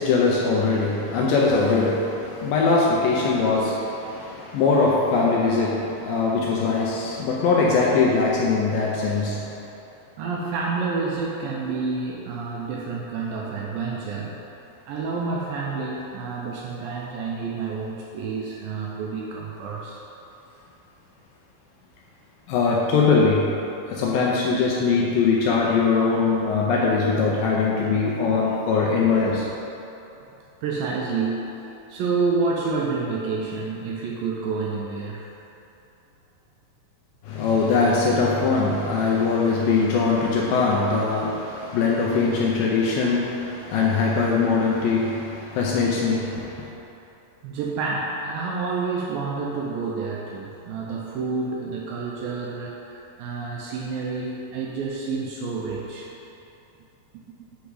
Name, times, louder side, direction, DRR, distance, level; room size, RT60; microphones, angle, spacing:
voice 1, 0.0-9.5 22.5-23.5 23.9-29.5 37.3-46.7, left 4 dB, 80° left, -4 dB, 2.1 m, -21 dB
voice 2, 10.2-14.4 14.9-20.0 30.1-30.3 30.6-31.5 31.9-35.2 47.4-56.1, right 4 dB, 85° right, -3 dB, 2.1 m, -29 dB
8.0 x 3.5 x 4.7 m, 3.0 s
omnidirectional pair, 4.5 m